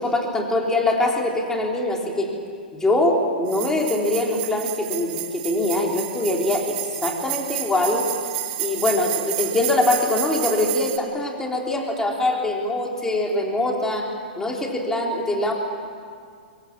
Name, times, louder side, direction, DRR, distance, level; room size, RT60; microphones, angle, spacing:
voice 1, 0.0-2.3 2.8-6.8 7.0-8.1 8.6-14.1 14.4-15.5, left 2 dB, 10° left, 0 dB, 3.5 m, -23 dB
sound 1, 3.5-11.0, right 14 dB, 40° right, 2.2 m, -30 dB
23.5 x 23.5 x 7.4 m, 2.2 s
hypercardioid pair, 120°, 5 cm